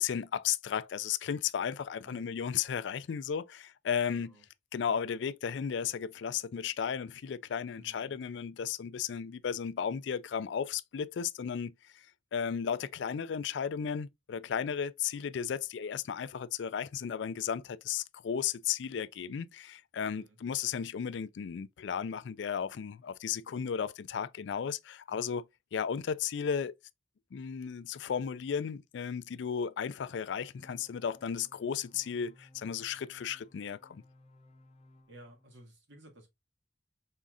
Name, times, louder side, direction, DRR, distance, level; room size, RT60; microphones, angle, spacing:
voice 1, 0.0-4.3 4.7-12.1 12.3-25.4 25.7-26.7 27.3-34.0, left 7 dB, 65° left, 0.4 m, -34 dB
voice 2, 2.0-2.4 4.1-4.4 7.7-8.2 20.1-20.4 35.1-36.3, right 1 dB, 75° right, 1.8 m, -55 dB
sound 1, 30.6-35.6, left 1 dB, 35° left, 0.9 m, -61 dB
5.5 x 3.6 x 2.3 m
head